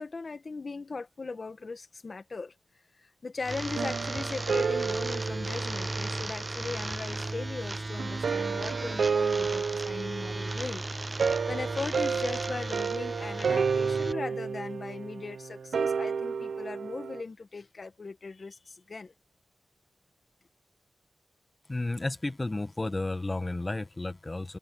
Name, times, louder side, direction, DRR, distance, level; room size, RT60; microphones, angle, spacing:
voice 1, 0.0-2.5 3.0-19.1, left 4 dB, 45° left, 1.8 m, -39 dB
sound 1, 3.4-14.1, right 2 dB, 25° right, 0.4 m, -35 dB
sound 2, 3.7-6.7 8.0-17.2, right 5 dB, 80° right, 1.0 m, -31 dB
voice 2, 21.7-24.6, left 2 dB, 25° left, 1.4 m, -32 dB
wide cardioid pair, 90°, 0 cm